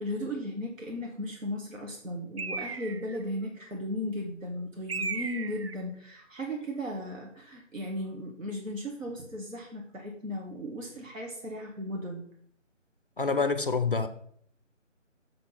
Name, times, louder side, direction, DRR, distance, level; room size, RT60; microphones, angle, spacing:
voice 1, 0.0-12.2, left 1 dB, 80° right, 1.6 m, -36 dB
Bird, 2.4-3.2 4.9-5.8, right 4 dB, 50° right, 0.5 m, -35 dB
voice 2, 13.2-14.1, left 4 dB, 45° left, 0.5 m, -26 dB
6.6 x 4.1 x 5.8 m
figure-of-eight pair, 160°, 39 cm